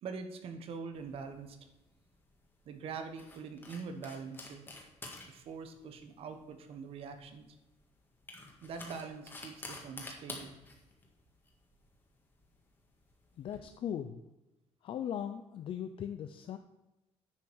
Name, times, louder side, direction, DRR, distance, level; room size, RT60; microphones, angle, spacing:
voice 1, 0.0-1.6 2.6-4.6 5.3-7.5 8.6-10.6, right 5 dB, 55° right, 7 dB, 1.3 m, -43 dB
sound 1, 1.0-13.6, left 2 dB, 20° left, 1.7 m, -51 dB
voice 2, 13.4-14.2 14.8-16.6, left 9 dB, 50° left, 8 dB, 0.5 m, -38 dB
10.0 x 5.8 x 6.3 m, 1.0 s
cardioid pair, 175°, 11 cm